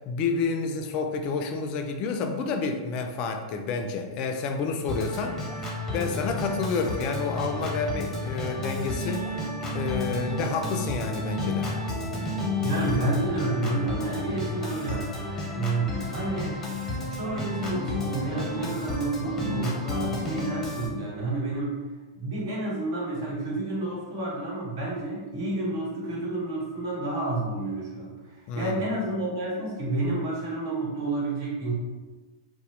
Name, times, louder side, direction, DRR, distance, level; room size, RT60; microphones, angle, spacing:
voice 1, 0.1-5.4 5.9-9.4 9.7-11.7 28.5-28.9, left 4 dB, 45° left, 5 dB, 0.3 m, -29 dB
Organ, 4.9-20.9, left 2 dB, 15° left, 0.7 m, -31 dB
voice 2, 12.6-15.1 15.5-16.6 17.1-21.8 22.1-31.7, right 2 dB, 65° right, -4 dB, 1.1 m, -30 dB
2.8 x 2.0 x 3.0 m, 1.3 s
hypercardioid pair, 110°, 2 cm